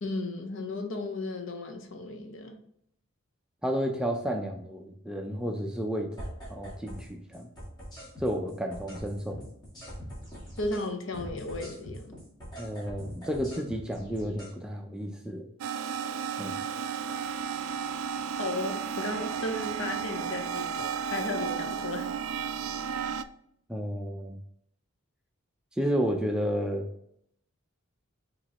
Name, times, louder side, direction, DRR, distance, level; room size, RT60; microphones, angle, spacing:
voice 1, 0.0-2.6 10.6-12.1 18.4-22.1, left 2 dB, 60° left, 5 dB, 0.7 m, -35 dB
voice 2, 3.6-6.1 6.5-7.5 8.2-9.4 12.6-15.4 16.4-16.6 23.7-24.4 25.8-26.9, equal, 5° right, 2 dB, 0.3 m, -31 dB
sound 1, 6.2-7.1 7.3-10.9 11.1-14.5 19.3-19.7 20.2-20.8 21.2-21.8, equal, 20° left, 1.6 m, -43 dB
sound 2, 15.6-23.2, right 7 dB, 80° right, 0.3 m, -33 dB
5.2 x 3.0 x 2.8 m, 0.69 s
head